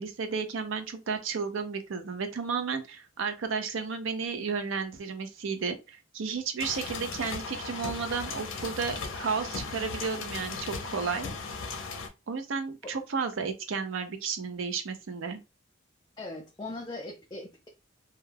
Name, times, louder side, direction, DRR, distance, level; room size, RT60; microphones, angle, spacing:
voice 1, 0.0-11.3 12.3-15.4, right 5 dB, 75° right, 0.5 m, -33 dB
sound 1, 6.6-12.1, left 4 dB, 80° left, 0.5 m, -37 dB
voice 2, 16.2-17.7, left 2 dB, 20° left, 0.4 m, -40 dB
2.2 x 2.2 x 3.2 m
head